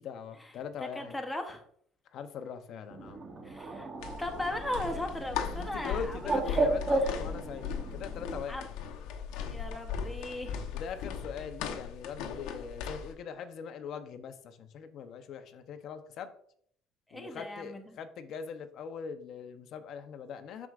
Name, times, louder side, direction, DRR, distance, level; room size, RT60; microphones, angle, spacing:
voice 1, 0.0-1.2 2.1-3.2 5.6-8.7 10.7-16.3 17.1-20.7, left 7 dB, 55° left, 9 dB, 0.8 m, -41 dB
voice 2, 0.9-1.6 3.4-3.9 4.2-6.7 7.0-7.2 8.5-8.7 9.5-10.6 17.1-17.9, left 1 dB, 5° left, 3 dB, 0.9 m, -37 dB
Bird, 2.9-8.4, right 2 dB, 25° right, 1.2 m, -34 dB
sound 1, 4.0-13.1, left 7 dB, 85° left, 0.9 m, -38 dB
12.0 x 4.7 x 2.5 m, 0.63 s
cardioid pair, 130°, 0 cm